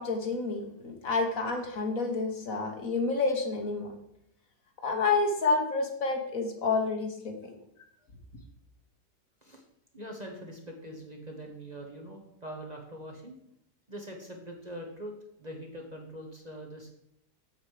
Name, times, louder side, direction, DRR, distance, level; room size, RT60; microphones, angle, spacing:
voice 1, 0.0-3.9 4.8-7.6, left 3 dB, 55° left, 4 dB, 1.6 m, -29 dB
voice 2, 9.9-13.4 13.9-16.9, equal, 30° right, 1 dB, 1.2 m, -43 dB
8.1 x 7.3 x 4.9 m, 0.75 s
omnidirectional pair, 1.7 m